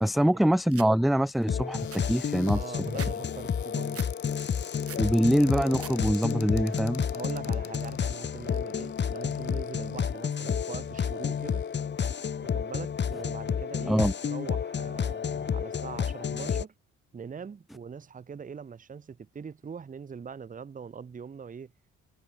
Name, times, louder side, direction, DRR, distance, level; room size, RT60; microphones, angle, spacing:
voice 1, 0.0-2.8 5.0-7.1 13.9-14.1, equal, ahead, 0.5 m, -24 dB
sound 1, 0.7-0.9 1.4-1.5 1.7-3.1 3.5-4.1 4.5-5.1 5.5-6.0 6.3-6.8, right 8 dB, 50° right, 3.0 m, -44 dB
sound 2, 1.5-16.6, left 7 dB, 35° left, 1.0 m, -31 dB
Cupboard open or close, 1.7-12.1 12.7-12.8 13.1-13.4, left 11 dB, 70° left, 2.3 m, -50 dB
voice 2, 2.5-4.1 7.1-11.6 12.4-16.7 17.1-21.7, right 6 dB, 25° right, 0.8 m, -42 dB
cardioid pair, 90°, 30 cm